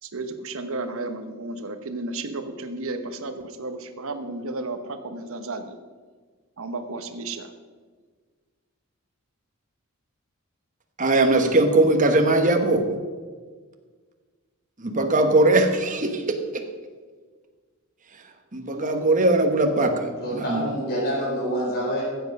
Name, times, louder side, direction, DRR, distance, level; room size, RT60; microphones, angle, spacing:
voice 1, 0.0-5.8 6.6-7.5, right 2 dB, 65° right, 8 dB, 1.0 m, -33 dB
voice 2, 11.0-12.9 14.8-16.4 18.5-20.7, right 2 dB, 35° right, 5 dB, 1.2 m, -20 dB
voice 3, 20.2-22.0, equal, 45° left, -4 dB, 4.1 m, -27 dB
15.0 x 7.9 x 5.4 m, 1.5 s
head